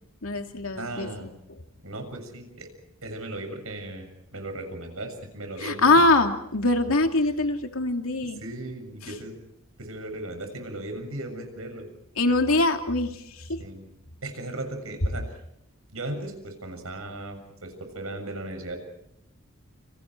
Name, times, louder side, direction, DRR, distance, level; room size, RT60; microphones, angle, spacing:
voice 1, 0.2-1.1 5.6-8.4 12.2-13.1, left 2 dB, 85° left, 5 dB, 2.6 m, -22 dB
voice 2, 0.8-1.3 1.8-2.7 3.0-6.0 7.2-7.4 8.2-9.3 9.8-11.9 13.6-13.8 14.2-15.3 15.9-18.8, right 1 dB, 80° right, 6 dB, 7.2 m, -37 dB
30.0 x 28.5 x 4.6 m, 0.77 s
head